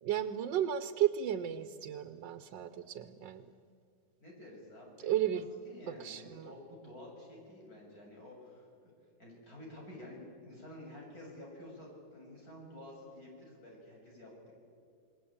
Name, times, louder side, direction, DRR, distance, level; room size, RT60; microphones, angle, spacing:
voice 1, 0.0-3.5 5.0-5.5 5.9-6.5, right 10 dB, 90° right, 10 dB, 1.5 m, -34 dB
voice 2, 4.2-8.9 9.2-14.5, left 1 dB, 55° left, -2 dB, 7.7 m, -51 dB
29.0 x 20.5 x 8.7 m, 2.3 s
omnidirectional pair, 1.9 m